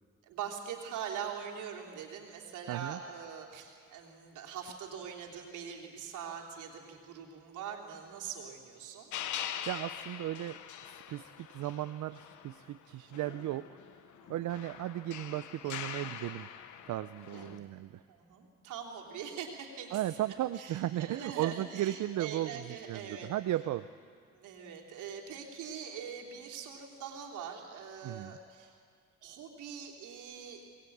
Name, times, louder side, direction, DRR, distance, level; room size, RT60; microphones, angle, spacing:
voice 1, 0.2-9.1 14.2-14.3 17.3-17.6 18.1-20.0 20.5-23.3 24.3-28.8 29.2-30.6, right 7 dB, 90° right, 1 dB, 3.3 m, -43 dB
voice 2, 2.7-3.0 9.7-10.6 10.9-13.7 14.3-16.5 16.9-18.0 19.9-23.9 28.0-28.4, right 14 dB, 75° right, 12 dB, 0.6 m, -35 dB
sound 1, 9.1-12.8 13.1-17.6, left 10 dB, 80° left, 1.2 m, -43 dB
23.0 x 19.5 x 8.6 m, 2.1 s
cardioid pair, 90°, 30 cm